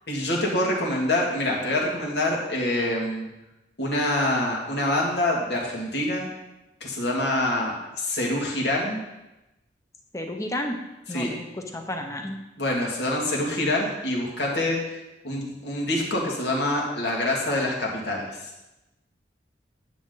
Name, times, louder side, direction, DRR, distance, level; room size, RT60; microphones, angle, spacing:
voice 1, 0.1-3.3 3.8-6.3 6.8-9.0 11.1-11.3 12.6-15.0 15.2-18.3, left 1 dB, 70° left, -2 dB, 2.2 m, -26 dB
voice 2, 10.1-10.8 11.1-11.5 11.7-12.4, left 1 dB, 15° left, 4 dB, 0.9 m, -31 dB
9.9 x 7.6 x 3.9 m, 0.98 s
head